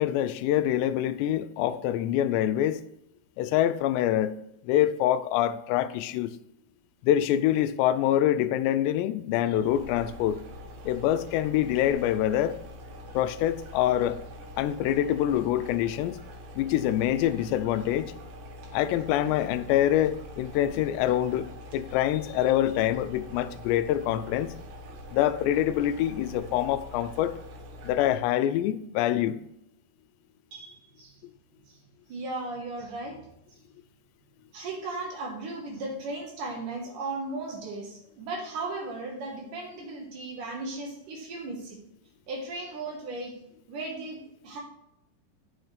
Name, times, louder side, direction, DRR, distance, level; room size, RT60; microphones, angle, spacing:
voice 1, 0.0-2.8 3.4-4.4 4.6-6.3 7.0-10.4 10.9-12.6 13.1-14.2 14.6-16.2 16.6-18.1 18.7-21.5 21.7-24.5 25.1-27.3 27.8-29.4, left 12 dB, 90° left, 2.8 m, -25 dB
sound 1, 9.4-28.4, equal, 85° right, 1.6 m, -44 dB
voice 2, 30.5-31.2 31.7-31.8 32.1-33.3 34.5-41.8 42.3-43.3 43.7-44.6, right 2 dB, 60° right, 2.5 m, -36 dB
9.1 x 6.4 x 3.3 m
omnidirectional pair, 4.9 m